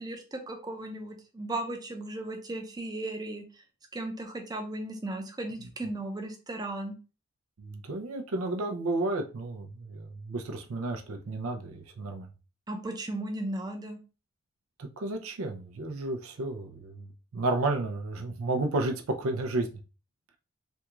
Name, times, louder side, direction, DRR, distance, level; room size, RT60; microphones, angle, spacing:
voice 1, 0.0-3.6 3.9-6.9 12.7-14.0, right 1 dB, 20° right, 0.5 m, -36 dB
voice 2, 7.6-12.3 14.8-19.7, right 2 dB, 80° right, 0.5 m, -32 dB
3.4 x 2.3 x 2.9 m
head